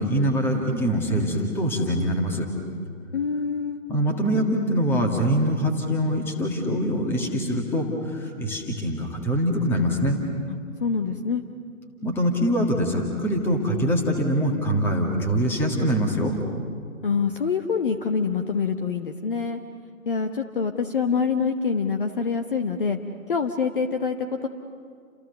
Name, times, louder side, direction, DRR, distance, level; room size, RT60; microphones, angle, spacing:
voice 1, 0.0-2.5 3.9-10.2 12.0-16.3, equal, 5° left, 1 dB, 1.9 m, -24 dB
voice 2, 3.1-3.8 10.8-11.4 17.0-19.6 20.1-23.0 23.3-24.2 24.4-24.5, left 5 dB, 35° left, 5 dB, 1.2 m, -25 dB
30.0 x 27.0 x 6.9 m, 2.2 s
figure-of-eight pair, 145°, 43 cm